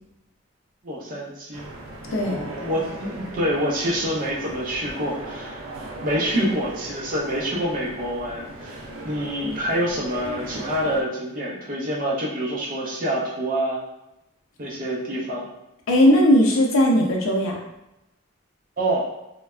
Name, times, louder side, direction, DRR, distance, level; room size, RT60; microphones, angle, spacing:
voice 1, 0.8-1.7 2.1-5.6 6.0-13.8 14.6-15.5 18.8-19.1, equal, 40° right, -4 dB, 0.6 m, -27 dB
sound 1, 1.5-11.0, right 1 dB, 85° right, 0.4 m, -37 dB
voice 2, 2.1-2.4 6.3-6.5 15.9-17.6, equal, 85° left, 1 dB, 0.5 m, -18 dB
3.2 x 2.1 x 2.3 m, 0.90 s
head